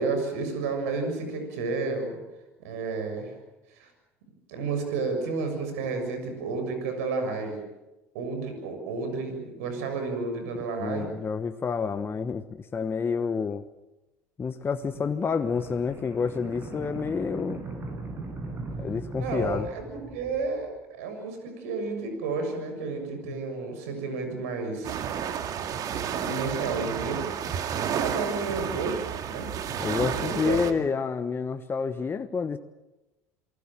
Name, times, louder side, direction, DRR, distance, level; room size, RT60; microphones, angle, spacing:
voice 1, 0.0-2.2 2.6-3.3 3.7-3.9 4.5-7.6 8.1-11.1 19.2-19.8 20.1-25.0 26.1-27.3 28.0-29.5 30.1-30.8, right 4 dB, 75° right, 6 dB, 6.9 m, -31 dB
voice 2, 10.8-13.6 14.4-17.6 18.8-19.7 23.3-23.4 29.8-32.6, left 5 dB, 30° left, 9 dB, 1.2 m, -29 dB
sound 1, 14.8-20.7, right 2 dB, 30° right, 7.8 m, -39 dB
sound 2, 24.8-30.7, right 8 dB, 50° right, 2.2 m, -31 dB
28.0 x 19.5 x 7.5 m, 1.0 s
hypercardioid pair, 75°, 8 cm